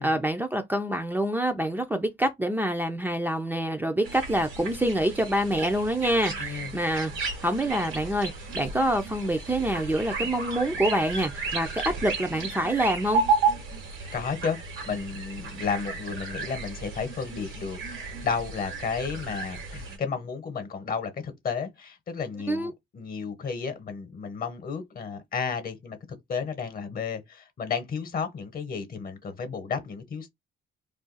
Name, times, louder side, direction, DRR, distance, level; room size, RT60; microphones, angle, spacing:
voice 1, 0.0-13.2 22.5-22.7, right 1 dB, 10° right, 0.4 m, -26 dB
sound 1, 4.0-20.0, right 4 dB, 80° right, 1.1 m, -33 dB
voice 2, 6.4-6.7 14.1-14.6 14.8-26.0 26.3-30.3, left 5 dB, 45° left, 0.9 m, -32 dB
2.5 x 2.3 x 3.9 m
cardioid pair, 90°, 20 cm